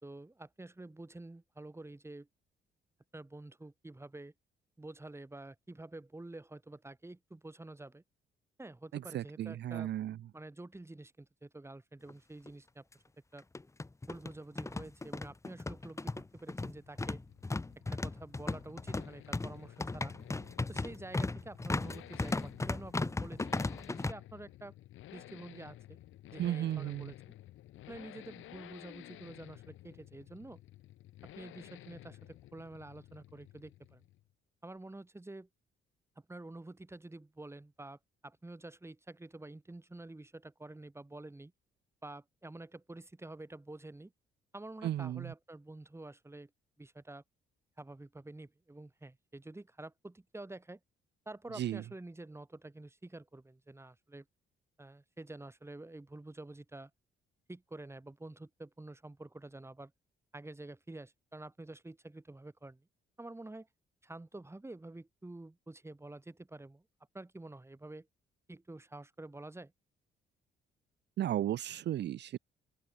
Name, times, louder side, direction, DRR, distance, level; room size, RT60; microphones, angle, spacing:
voice 1, 0.0-2.3 3.1-4.3 4.8-8.0 8.6-9.9 10.3-12.8 13.3-13.4 14.1-17.2 17.9-20.1 20.7-23.5 23.9-24.7 25.1-26.0 26.3-27.3 27.9-30.6 31.2-34.0 34.6-35.5 36.3-41.5 42.0-44.1 44.5-46.5 46.8-47.2 47.8-50.8 51.2-54.2 54.8-56.9 57.5-59.9 60.3-62.9 63.2-63.7 64.0-66.8 67.1-68.1 68.5-69.7, right 2 dB, 15° right, 3.1 m, -48 dB
voice 2, 8.9-10.2 26.4-27.1 44.8-45.3 51.5-51.8 71.2-72.4, right 12 dB, 60° right, 0.6 m, -35 dB
sound 1, 12.1-12.2 12.5-12.6 13.4-24.1, left 2 dB, 15° left, 1.0 m, -36 dB
sound 2, 16.3-34.3, left 14 dB, 85° left, 5.7 m, -54 dB
open air
cardioid pair, 90°, 20 cm